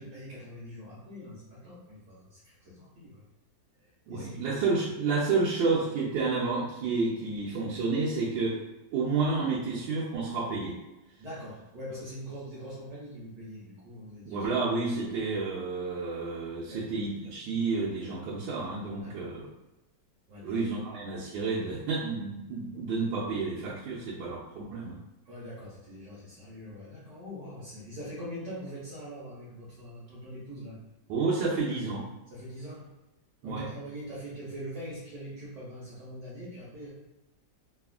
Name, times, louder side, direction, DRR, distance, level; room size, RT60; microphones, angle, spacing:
voice 1, 0.0-3.2 3.8-4.9 5.3-5.5 11.2-14.5 16.7-16.9 19.0-19.3 20.3-20.6 25.2-30.8 32.3-32.9 33.4-36.9, equal, 70° right, -8 dB, 1.4 m, -42 dB
voice 2, 4.1-8.6 8.9-10.8 14.2-19.5 20.4-25.0 31.1-32.1 33.4-33.7, right 4 dB, 90° right, -7 dB, 1.4 m, -30 dB
3.4 x 2.4 x 2.3 m, 0.99 s
omnidirectional pair, 2.1 m